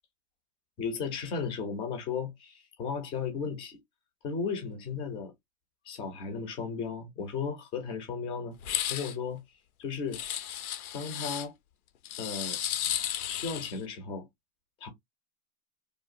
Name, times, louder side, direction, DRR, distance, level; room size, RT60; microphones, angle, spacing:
voice 1, 0.8-3.8 4.2-5.3 5.9-8.6 8.9-9.4 9.8-10.2 10.9-11.5 12.2-12.6 13.3-14.2 14.8-14.9, left 5 dB, 15° left, 0.3 m, -35 dB
sound 1, 8.6-9.1 10.1-11.5 12.1-13.8, left 11 dB, 85° left, 0.6 m, -34 dB
2.8 x 2.2 x 2.4 m
hypercardioid pair, 125°, 42 cm